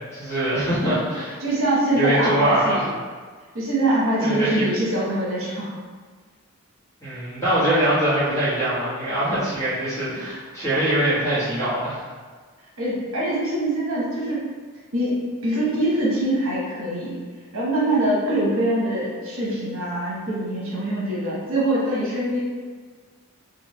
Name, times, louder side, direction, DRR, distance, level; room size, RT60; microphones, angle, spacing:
voice 1, 0.1-1.3 2.0-2.8 4.2-4.7 7.0-12.1, right 1 dB, 15° left, -12 dB, 1.2 m, -23 dB
voice 2, 1.4-2.8 3.5-5.7 12.8-14.4 14.9-17.2 17.5-22.4, right 1 dB, 70° right, -6 dB, 1.0 m, -23 dB
3.4 x 2.5 x 3.1 m, 1.5 s
head